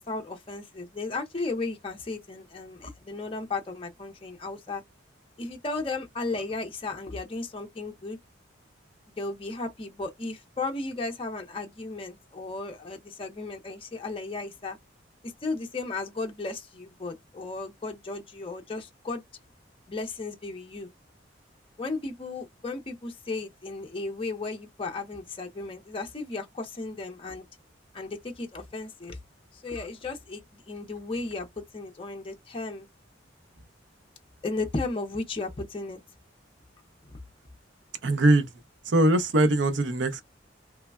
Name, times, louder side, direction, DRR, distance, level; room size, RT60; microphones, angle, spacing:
voice 1, 0.0-4.8 5.4-8.2 9.2-14.8 15.4-19.2 19.9-20.9 21.8-27.5 27.9-29.2 29.5-32.9 34.4-36.0, left 3 dB, 30° left, 0.5 m, -35 dB
voice 2, 38.0-38.5 38.9-40.2, right 1 dB, 70° right, 0.6 m, -21 dB
3.2 x 2.1 x 2.3 m
head